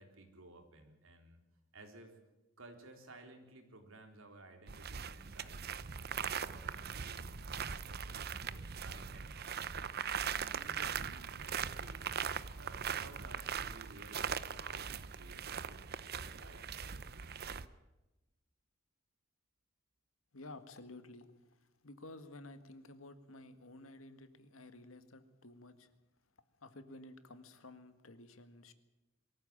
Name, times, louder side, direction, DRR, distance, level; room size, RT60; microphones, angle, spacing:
voice 1, 0.0-1.4 1.7-2.2 2.6-9.8 10.3-12.1 12.6-17.1, right 2 dB, 80° right, 4 dB, 3.9 m, -56 dB
sound 1, 4.7-17.7, right 7 dB, 50° right, 0.7 m, -40 dB
voice 2, 20.3-21.3 21.8-25.9 26.6-28.7, left 2 dB, 85° left, 10 dB, 1.9 m, -53 dB
23.0 x 14.5 x 8.8 m, 1.0 s
head